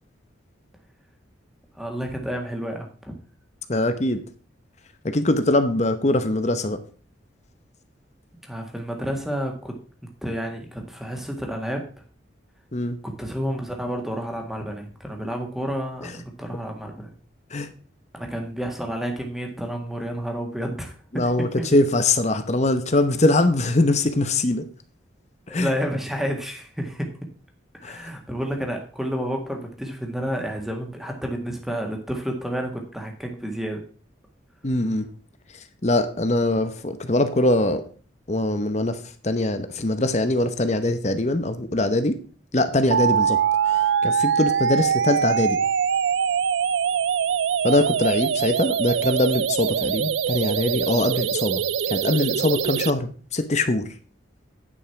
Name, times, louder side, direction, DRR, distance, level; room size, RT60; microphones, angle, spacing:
voice 1, 1.7-3.1 8.4-9.7 10.2-12.1 13.0-17.1 18.1-21.7 25.5-27.1 27.8-33.9, equal, ahead, 2 dB, 1.7 m, -30 dB
voice 2, 3.7-4.2 5.0-6.8 12.7-13.0 17.5-17.7 21.1-24.7 25.5-25.7 27.8-28.1 34.6-35.1 35.8-37.8 38.3-39.0 39.2-42.2 42.5-43.4 43.7-45.6 47.6-53.9, left 2 dB, 35° left, 10 dB, 0.9 m, -22 dB
sound 1, 42.9-52.9, right 7 dB, 70° right, 0.4 m, -23 dB
9.8 x 5.6 x 5.8 m, 0.41 s
head